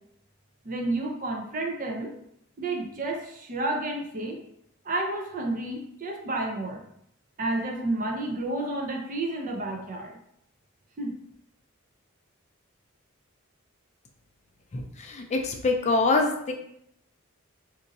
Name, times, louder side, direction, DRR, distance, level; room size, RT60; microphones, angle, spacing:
voice 1, 0.6-2.1 2.6-4.4 4.8-6.8 7.4-10.2 11.0-11.1, right 2 dB, 40° right, 1 dB, 0.6 m, -30 dB
voice 2, 14.7-16.5, left 3 dB, 35° left, 3 dB, 0.4 m, -25 dB
2.6 x 2.6 x 4.0 m, 0.72 s
head